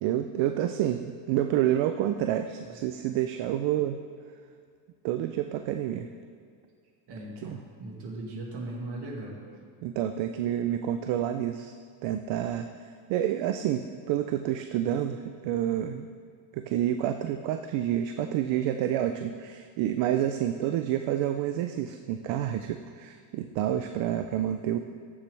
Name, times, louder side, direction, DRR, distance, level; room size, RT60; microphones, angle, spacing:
voice 1, 0.0-4.0 5.0-6.1 7.4-7.6 9.8-11.7 12.0-12.6 13.1-16.1 16.5-24.8, right 11 dB, 70° right, 7 dB, 0.6 m, -28 dB
voice 2, 7.1-9.4, right 2 dB, 55° right, -2 dB, 2.2 m, -38 dB
14.5 x 7.3 x 3.3 m, 2.3 s
cardioid pair, 150°, 48 cm